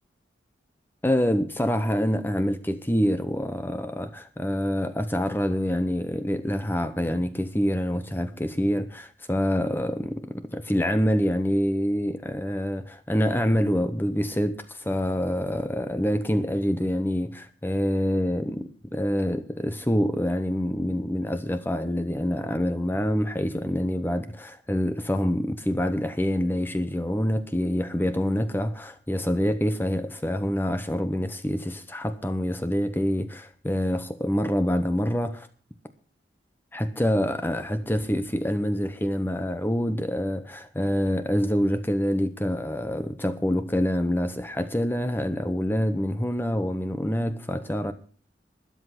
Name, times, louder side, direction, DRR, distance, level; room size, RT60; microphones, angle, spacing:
voice 1, 1.0-35.5 36.7-47.9, equal, 10° left, 0.8 m, -26 dB
13.0 x 10.5 x 5.9 m
head